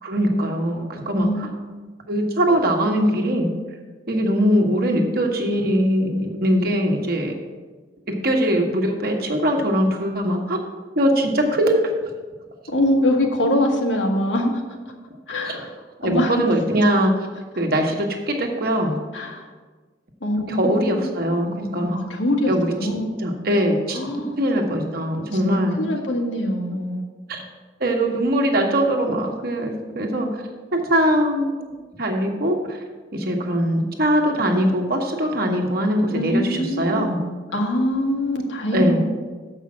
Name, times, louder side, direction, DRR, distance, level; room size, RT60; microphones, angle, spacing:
voice 1, 0.0-1.5 2.1-3.5 4.1-7.3 8.1-10.6 11.0-11.9 15.4-15.6 16.0-17.1 17.6-19.0 20.5-22.0 22.5-22.7 23.2-24.0 24.4-25.7 27.3-27.4 27.8-30.3 30.7-31.6 32.0-32.8 33.1-37.2 38.7-39.0, equal, 55° right, 2 dB, 1.2 m, -21 dB
voice 2, 1.1-1.8 12.7-14.6 15.3-15.7 16.0-16.5 19.1-19.5 20.2-21.1 21.9-23.1 23.9-24.4 25.3-25.4 25.7-27.0 36.1-37.1 37.5-39.0, left 1 dB, 90° left, 1 dB, 1.5 m, -23 dB
7.3 x 5.5 x 7.3 m, 1.3 s
head